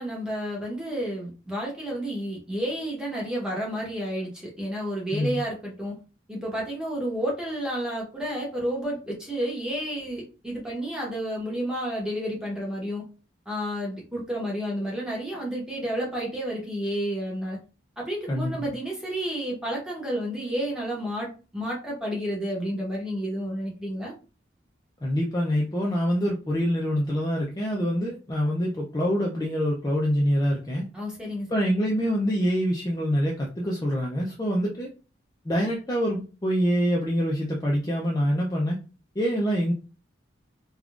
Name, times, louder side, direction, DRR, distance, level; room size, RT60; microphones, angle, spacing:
voice 1, 0.0-5.9 6.3-13.0 13.5-17.6 18.0-24.1 30.9-31.8, equal, 5° right, -4 dB, 0.9 m, -31 dB
voice 2, 5.1-5.4 18.3-18.7 25.0-30.9 31.5-34.9 35.5-38.8 39.2-39.7, equal, 20° left, -3 dB, 0.4 m, -25 dB
3.5 x 2.3 x 2.4 m, 0.34 s
head